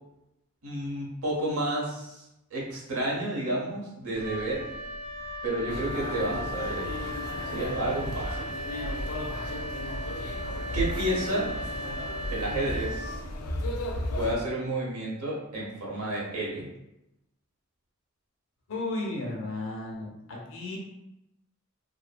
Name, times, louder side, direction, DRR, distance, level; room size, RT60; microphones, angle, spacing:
voice 1, 0.6-2.3 2.5-4.6 5.4-6.9 7.5-8.5 10.7-11.5 12.3-13.2 14.1-16.7, right 1 dB, 90° right, -4 dB, 0.9 m, -31 dB
Wind instrument woodwind instrument, 4.1-13.6, equal, 50° right, 0.5 m, -37 dB
sound 1, 5.7-14.4, left 1 dB, 90° left, 0.4 m, -34 dB
voice 2, 18.7-20.8, left 2 dB, 65° left, -3 dB, 0.8 m, -34 dB
2.5 x 2.5 x 2.3 m, 0.88 s
head